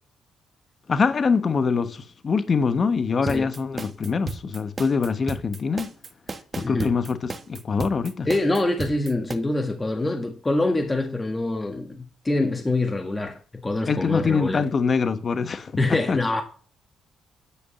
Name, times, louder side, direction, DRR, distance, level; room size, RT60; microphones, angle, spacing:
voice 1, 0.9-5.9 6.5-8.3 13.9-16.2, left 5 dB, 40° left, 1.2 m, -24 dB
sound 1, 3.3-9.4, right 4 dB, 35° right, 1.3 m, -34 dB
voice 2, 6.6-6.9 8.2-14.6 15.8-16.4, left 2 dB, 20° left, 1.5 m, -25 dB
10.0 x 5.1 x 7.0 m
cardioid pair, 90°, 0 cm